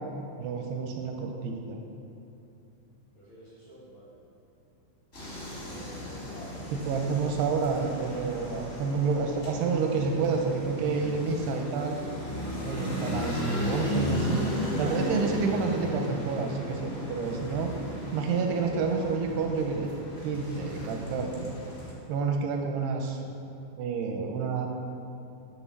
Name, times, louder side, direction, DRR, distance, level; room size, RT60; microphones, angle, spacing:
voice 1, 0.4-1.8 6.7-12.0 12.6-14.4 14.8-17.7 18.1-19.9 20.2-21.5 22.1-23.2 23.8-24.7, right 5 dB, 85° right, 2 dB, 2.4 m, -29 dB
voice 2, 3.1-4.1 5.6-7.5, equal, 70° left, -9 dB, 1.7 m, -49 dB
sound 1, 5.1-21.9, equal, 45° left, 1.0 m, -35 dB
10.0 x 3.7 x 7.1 m, 2.8 s
omnidirectional pair, 5.1 m